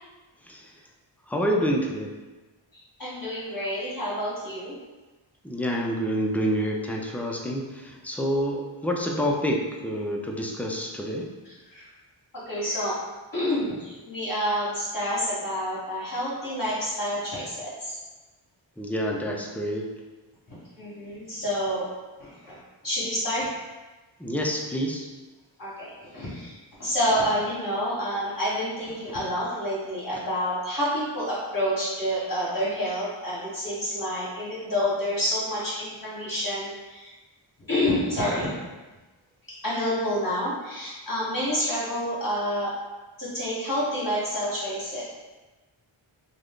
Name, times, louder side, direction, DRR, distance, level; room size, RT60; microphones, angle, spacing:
voice 1, 1.3-2.2 5.4-11.3 18.8-20.0 24.2-25.1, equal, 5° left, 0 dB, 0.4 m, -28 dB
voice 2, 3.0-4.8 11.4-11.9 12.3-13.0 13.3-18.0 20.5-21.8 22.2-22.6 22.8-23.5 25.6-37.1 37.7-38.5 39.6-42.7 43.2-45.0, equal, 40° left, -8 dB, 1.0 m, -28 dB
2.6 x 2.4 x 3.5 m, 1.2 s
wide cardioid pair, 40°, 49 cm